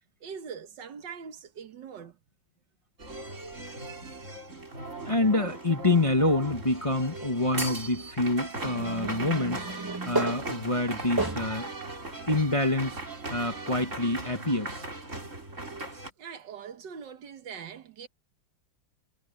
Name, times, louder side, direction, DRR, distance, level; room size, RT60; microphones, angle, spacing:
voice 1, 0.2-2.2 16.2-18.1, right 6 dB, 65° right, 1.8 m, -42 dB
sound 1, 3.0-16.1, right 2 dB, 35° right, 4.7 m, -38 dB
voice 2, 5.0-9.7 10.1-11.7 12.3-13.0 13.3-14.9, left 2 dB, 20° left, 1.2 m, -27 dB
sound 2, 8.6-11.7 12.3-12.4 13.8-13.9, right 2 dB, 15° right, 1.2 m, -33 dB
omnidirectional pair, 2.1 m